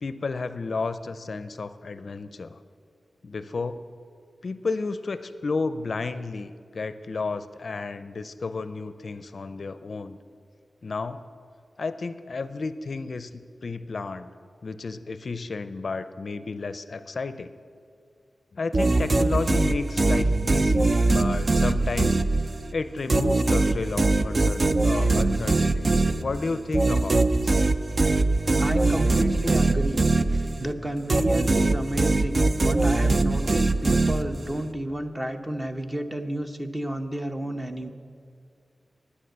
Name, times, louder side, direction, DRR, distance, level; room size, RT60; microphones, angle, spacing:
voice 1, 0.0-2.6 3.2-3.8 4.4-10.2 10.8-11.2 11.8-14.3 14.6-17.5 18.5-22.2 22.7-27.6, left 4 dB, 60° left, 12 dB, 0.5 m, -32 dB
sound 1, 18.7-22.7 23.1-30.7 31.1-34.6, right 2 dB, 40° right, 0.5 m, -22 dB
voice 2, 28.5-37.9, right 1 dB, 15° right, 5 dB, 0.9 m, -31 dB
11.0 x 9.7 x 7.9 m, 2.3 s
wide cardioid pair, 100°, 0 cm